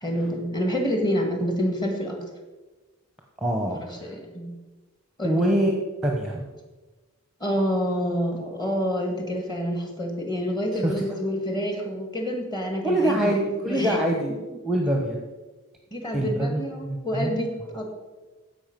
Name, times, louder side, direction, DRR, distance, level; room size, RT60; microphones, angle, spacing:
voice 1, 0.0-2.2 3.7-3.8 4.0-4.5 5.2-5.4 7.4-14.0 15.9-17.9, equal, 20° left, 2 dB, 1.7 m, -27 dB
voice 2, 3.4-4.1 5.2-5.7 6.0-6.5 10.7-10.9 12.8-13.4 13.6-14.4 14.6-15.2 16.1-17.4, right 1 dB, ahead, 0 dB, 0.9 m, -25 dB
15.0 x 5.4 x 5.2 m, 1.2 s
head